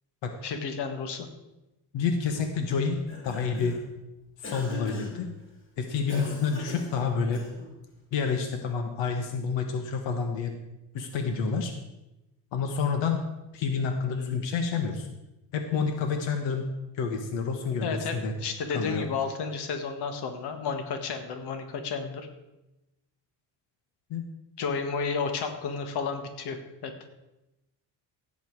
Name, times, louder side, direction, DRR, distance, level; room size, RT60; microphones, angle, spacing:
voice 1, 0.4-1.3 17.8-22.3 24.6-26.9, left 5 dB, 65° left, 6 dB, 1.7 m, -32 dB
voice 2, 1.9-3.8 4.4-5.3 5.8-7.5 8.1-10.5 10.9-11.7 12.5-13.2 13.5-15.1 15.5-16.7 16.9-18.3 18.7-19.1 24.1-24.2, left 5 dB, 85° left, 5 dB, 1.5 m, -29 dB
Cough, 2.9-3.9 4.4-5.3 6.1-7.8, left 1 dB, 30° left, 3.2 m, -41 dB
16.0 x 8.2 x 4.7 m, 0.97 s
cardioid pair, 145°, 43 cm